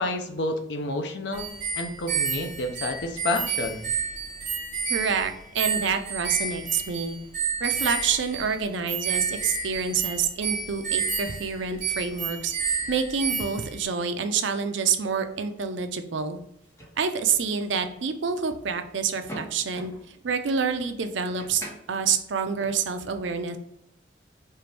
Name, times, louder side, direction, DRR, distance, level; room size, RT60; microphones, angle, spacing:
voice 1, 0.0-1.5 1.8-3.9, left 2 dB, 65° left, 5 dB, 0.6 m, -29 dB
sound 1, 1.3-13.8, right 6 dB, 45° right, 1.2 m, -30 dB
voice 2, 4.9-7.2 7.6-12.5 12.9-16.4 17.0-19.9 20.2-23.6, right 6 dB, 80° right, 8 dB, 0.5 m, -27 dB
sound 2, 16.2-23.0, equal, 15° left, 1.1 m, -48 dB
4.5 x 2.5 x 3.3 m, 0.77 s
head